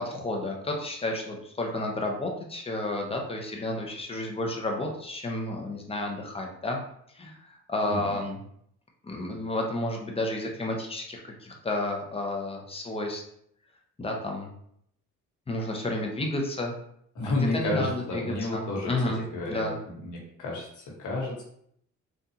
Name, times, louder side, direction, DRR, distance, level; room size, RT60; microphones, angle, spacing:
voice 1, 0.0-6.8 7.1-8.4 9.0-13.2 14.0-14.5 15.5-16.7 17.2-19.2 19.5-19.8, left 1 dB, 20° left, 1 dB, 0.8 m, -31 dB
voice 2, 7.9-8.2 17.1-21.4, left 2 dB, 80° left, -3 dB, 1.4 m, -31 dB
3.7 x 2.5 x 2.8 m, 0.70 s
cardioid pair, 90°, 30 cm